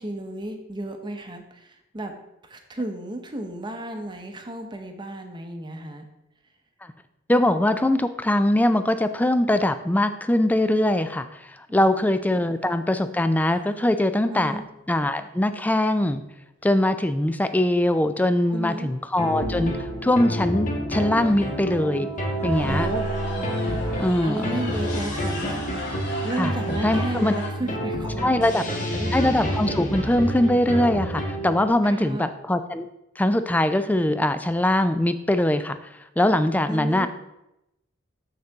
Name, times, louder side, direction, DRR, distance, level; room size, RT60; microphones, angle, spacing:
voice 1, 0.0-2.2 2.4-6.0 11.7-12.0 12.3-12.5 14.3-14.7 18.5-18.9 22.6-23.0 24.2-25.6 26.0-29.1 31.8-32.2 36.7-37.1, right 1 dB, 25° right, 5 dB, 0.8 m, -33 dB
voice 2, 7.3-11.3 11.7-14.6 14.9-16.2 16.6-22.1 22.4-22.9 24.0-24.4 26.4-26.5 26.8-27.3 28.2-28.6 29.1-32.9 33.2-35.8 36.2-37.1, left 1 dB, 10° left, 11 dB, 0.3 m, -22 dB
sound 1, 11.9-12.3 12.8-12.9 13.3-13.8 17.0-17.1 18.3-18.4 18.6-18.9 19.4-19.5 20.2-20.3 20.6-20.7 21.2-21.6 22.2-27.5, left 1 dB, 60° left, 1.4 m, -38 dB
sound 2, 19.2-31.7, right 1 dB, 40° left, 1.3 m, -28 dB
6.8 x 6.5 x 3.5 m, 0.88 s
head